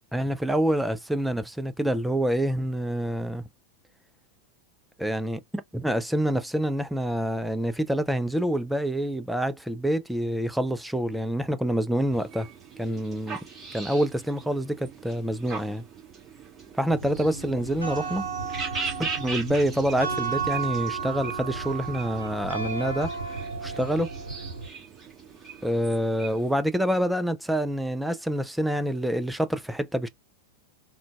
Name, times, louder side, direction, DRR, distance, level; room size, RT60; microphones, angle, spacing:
voice 1, 0.1-3.4 5.0-5.4 5.7-12.5 12.8-13.4 13.7-15.8 16.8-18.3 19.0-23.1 23.6-24.1 25.6-30.1, right 1 dB, 5° right, 0.3 m, -27 dB
sound 1, 12.1-26.6, right 4 dB, 20° right, 1.6 m, -40 dB
sound 2, 16.9-24.7, right 5 dB, 85° right, 0.7 m, -33 dB
3.7 x 2.2 x 2.3 m
figure-of-eight pair, 90°, 0 cm